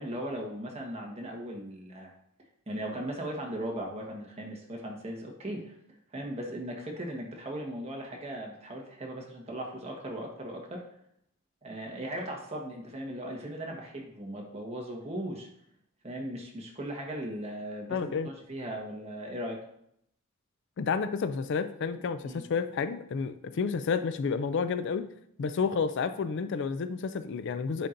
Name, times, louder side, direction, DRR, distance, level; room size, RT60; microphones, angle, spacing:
voice 1, 0.0-2.1 2.7-5.8 6.1-10.8 11.6-15.5 16.0-19.6 22.2-22.4, right 1 dB, 30° right, 0 dB, 1.3 m, -38 dB
voice 2, 17.9-18.3 20.8-25.0 25.4-27.9, left 5 dB, 65° left, 12 dB, 0.4 m, -30 dB
10.0 x 4.3 x 2.6 m, 0.72 s
head